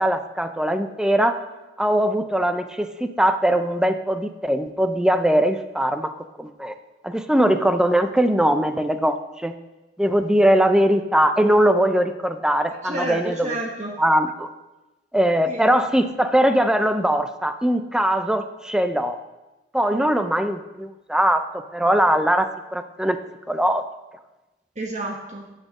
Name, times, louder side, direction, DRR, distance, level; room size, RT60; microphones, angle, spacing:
voice 1, 0.0-1.4 1.8-6.7 7.0-9.5 10.0-13.6 14.0-14.5 15.1-19.2 19.7-21.4 21.7-23.2 23.5-23.8, right 1 dB, 5° right, 8 dB, 0.5 m, -21 dB
voice 2, 12.8-14.0 15.5-15.6 19.9-20.0 24.8-25.5, right 1 dB, 40° right, 0 dB, 1.2 m, -30 dB
9.0 x 6.5 x 6.4 m, 1.1 s
head